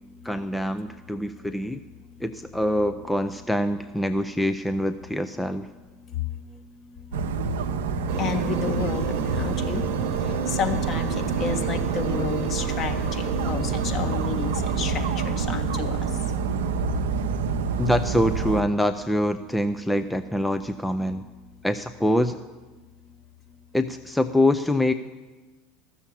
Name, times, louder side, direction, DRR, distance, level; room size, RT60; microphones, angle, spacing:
voice 1, 0.2-1.8 2.2-5.7 17.8-21.2 21.6-22.4 23.7-24.9, left 1 dB, 5° left, 9 dB, 0.5 m, -25 dB
Dog, 7.1-18.6, right 5 dB, 70° right, 0.7 m, -27 dB
sound 1, 8.1-16.9, right 6 dB, 55° right, 1.1 m, -33 dB
voice 2, 8.2-9.9 10.5-15.9, left 5 dB, 40° left, 4 dB, 1.6 m, -31 dB
13.5 x 7.1 x 8.4 m, 1.2 s
hypercardioid pair, 75°, 0 cm